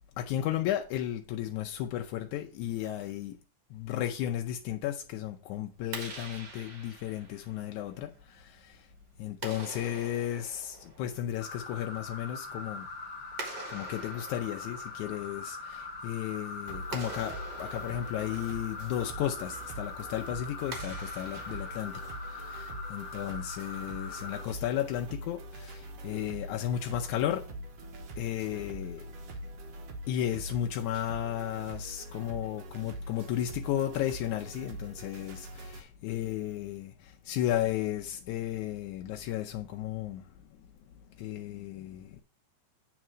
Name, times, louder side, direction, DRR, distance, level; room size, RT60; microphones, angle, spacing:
voice 1, 0.2-3.4 3.7-8.9 9.2-12.9 13.7-27.5 28.2-29.1 30.1-40.3 41.2-42.2, left 12 dB, 85° left, 2.1 m, -34 dB
Clapping, 5.8-22.5, right 3 dB, 40° right, 1.9 m, -47 dB
sound 1, 11.4-24.4, left 3 dB, 60° left, 2.1 m, -42 dB
sound 2, 16.7-35.8, right 1 dB, 65° right, 2.1 m, -43 dB
8.9 x 4.4 x 6.1 m
omnidirectional pair, 3.4 m